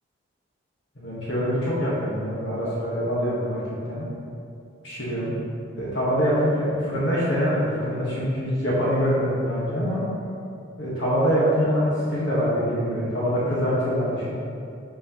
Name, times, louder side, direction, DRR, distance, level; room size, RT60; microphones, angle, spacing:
voice 1, 0.9-3.6 3.9-4.1 4.8-5.3 5.8-10.0 10.8-14.3, equal, 60° left, -9 dB, 1.4 m, -24 dB
11.0 x 4.5 x 3.0 m, 2.6 s
head